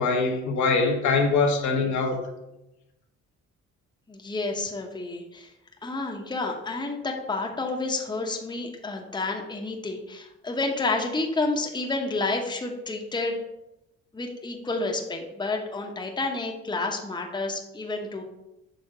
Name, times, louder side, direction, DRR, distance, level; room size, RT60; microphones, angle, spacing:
voice 1, 0.0-2.2, left 4 dB, 70° left, 2 dB, 1.2 m, -23 dB
voice 2, 4.1-5.5 5.8-13.4 14.1-18.2, left 3 dB, 15° left, 1 dB, 0.9 m, -30 dB
6.6 x 3.5 x 4.9 m, 0.91 s
cardioid pair, 90°, 30 cm